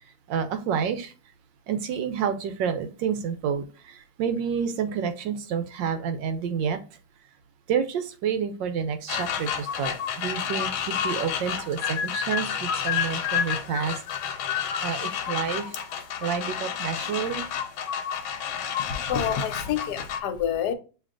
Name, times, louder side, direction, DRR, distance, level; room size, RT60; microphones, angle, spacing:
voice 1, 0.3-1.1 1.7-6.8 7.7-14.0 14.6-17.5, right 7 dB, 70° right, 9 dB, 1.2 m, -29 dB
sound 1, 9.1-20.2, left 8 dB, 90° left, 1.6 m, -30 dB
voice 2, 18.9-20.7, left 8 dB, 65° left, 6 dB, 1.2 m, -28 dB
7.4 x 2.8 x 2.4 m, 0.34 s
omnidirectional pair, 2.2 m